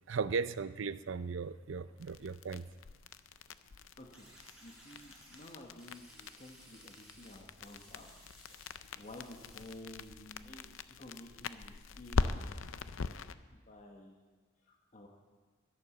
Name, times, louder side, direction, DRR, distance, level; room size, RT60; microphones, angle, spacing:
voice 1, 0.1-2.7, right 5 dB, 65° right, 15 dB, 0.5 m, -37 dB
sound 1, 2.0-13.3, left 4 dB, 75° left, 0.6 m, -41 dB
voice 2, 4.0-4.3 4.6-8.1 8.5-8.7 8.9-12.2 12.7-12.8 13.5-14.2 14.6-15.1, left 1 dB, 35° left, 0 dB, 1.3 m, -52 dB
sound 2, 4.1-5.5 5.8-7.4 7.6-8.7 9.0-9.7 10.0-10.1, right 1 dB, 5° right, 5.1 m, -59 dB
12.0 x 11.5 x 7.2 m, 1.4 s
head